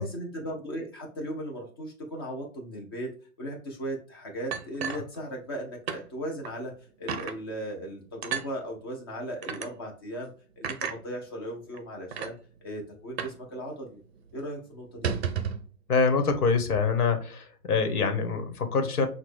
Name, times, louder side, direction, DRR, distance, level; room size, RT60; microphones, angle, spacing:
voice 1, 0.0-3.1 3.4-6.7 7.0-10.3 10.6-12.3 12.6-14.0 14.3-15.3, right 1 dB, 15° left, 0 dB, 0.5 m, -37 dB
sound 1, 4.5-5.6 5.9-6.0 6.4-6.6 7.1-7.4 8.2-8.5 9.4-9.7 10.6-11.0 11.7-11.8 12.1-12.3 13.2-13.4 13.7-13.8 14.1-14.3 14.9-15.6, right 7 dB, 45° right, 0.6 m, -32 dB
voice 2, 15.9-19.1, left 4 dB, 70° left, 7 dB, 1.3 m, -25 dB
5.9 x 2.3 x 3.2 m, 0.40 s
hypercardioid pair, 155°, 46 cm